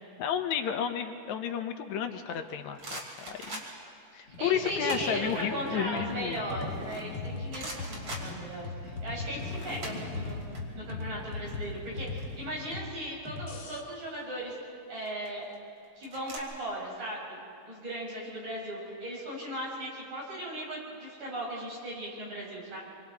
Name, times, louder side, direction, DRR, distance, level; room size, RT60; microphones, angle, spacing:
voice 1, 0.2-3.0 3.3-3.6 4.1-6.4, left 8 dB, 75° left, 6 dB, 2.3 m, -32 dB
sound 1, 2.3-4.0 4.6-5.2 5.6-7.1 7.5-8.9 9.1-10.6 10.9-11.1 11.3-12.9 13.9-14.3 14.9-16.4, right 1 dB, 40° right, 3.5 m, -43 dB
sound 2, 4.3-12.8, left 3 dB, 30° left, 1.4 m, -45 dB
voice 2, 4.4-14.6 14.9-15.5 16.0-17.4 17.7-22.8, right 1 dB, 75° right, -5 dB, 7.5 m, -37 dB
sound 3, 6.0-13.8, left 3 dB, 50° left, 2.3 m, -39 dB
27.0 x 25.0 x 4.3 m, 2.5 s
omnidirectional pair, 3.4 m